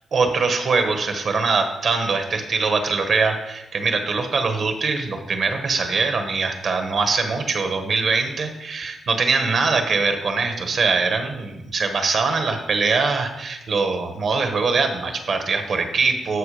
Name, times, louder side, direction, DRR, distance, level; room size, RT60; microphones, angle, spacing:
voice 1, 0.1-16.4, right 4 dB, 50° right, 6 dB, 1.5 m, -22 dB
13.0 x 6.3 x 5.0 m, 0.96 s
wide cardioid pair, 145°, 0 cm